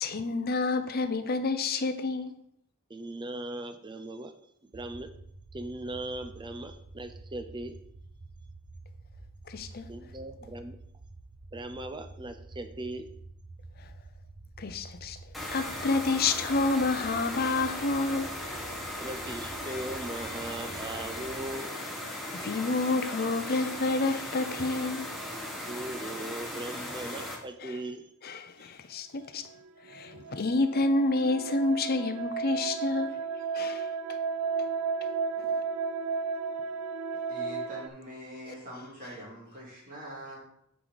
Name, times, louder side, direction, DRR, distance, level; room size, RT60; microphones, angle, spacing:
voice 1, 0.0-2.3 9.5-9.9 14.6-15.2 15.5-18.4 22.3-25.1 27.6-27.8 28.2-29.4 29.9-33.1 33.5-33.9 35.4-35.5, left 3 dB, 45° left, 0.6 m, -29 dB
voice 2, 2.9-4.3 4.6-5.1 5.5-7.8 9.9-10.8 11.5-13.1 19.0-21.8 25.7-28.1, right 1 dB, 20° right, 0.5 m, -39 dB
sound 1, 4.7-21.5, right 2 dB, 60° right, 0.8 m, -49 dB
sound 2, 15.3-27.4, left 1 dB, ahead, 1.4 m, -38 dB
sound 3, 29.5-37.9, right 5 dB, 90° right, 0.5 m, -33 dB
voice 3, 37.3-40.4, equal, 40° right, 2.4 m, -43 dB
9.3 x 4.8 x 4.0 m
head